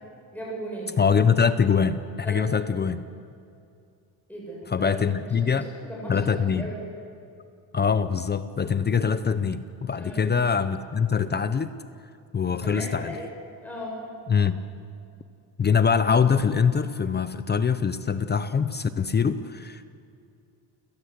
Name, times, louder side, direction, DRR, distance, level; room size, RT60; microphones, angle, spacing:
voice 1, 0.3-0.9 2.2-2.5 4.3-4.9 5.4-6.8 10.0-10.3 12.6-13.3 13.6-14.0, equal, 5° left, -4 dB, 7.6 m, -37 dB
voice 2, 1.0-3.0 4.7-5.7 6.1-6.7 7.7-11.7 12.3-13.2 14.3-14.6 15.6-19.8, left 6 dB, 20° left, 12 dB, 0.5 m, -23 dB
29.5 x 16.5 x 8.0 m, 2.5 s
cardioid pair, 175°, 48 cm